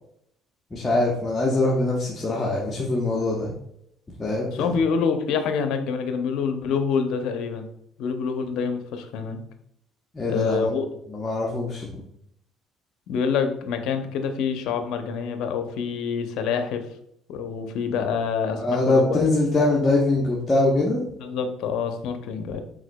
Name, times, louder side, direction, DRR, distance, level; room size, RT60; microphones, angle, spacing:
voice 1, 0.7-3.5 4.2-4.7 10.1-10.7 11.1-11.9 18.5-21.0, left 2 dB, 25° left, -4 dB, 0.8 m, -23 dB
voice 2, 4.5-7.7 8.0-9.4 10.2-10.8 13.1-16.8 17.3-19.2 21.2-22.6, left 6 dB, 75° left, 7 dB, 0.6 m, -26 dB
4.8 x 4.0 x 2.2 m, 0.74 s
supercardioid pair, 85°, 0 cm